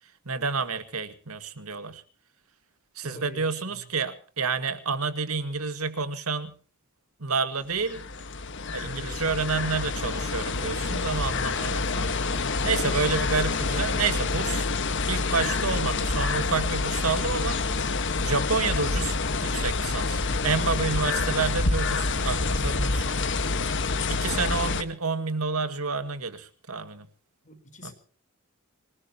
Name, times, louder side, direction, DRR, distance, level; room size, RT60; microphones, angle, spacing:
voice 1, 0.3-2.0 3.0-6.5 7.2-8.1 8.7-14.7 15.1-17.8 18.2-19.1 19.4-23.1 24.1-27.1 27.8-27.9, right 4 dB, 85° right, 10 dB, 2.0 m, -29 dB
voice 2, 3.0-3.9 27.4-27.9, left 1 dB, 35° left, 7 dB, 3.9 m, -46 dB
sound 1, 7.7-24.8, left 3 dB, 60° left, 1.5 m, -27 dB
26.0 x 19.0 x 2.9 m, 0.39 s
head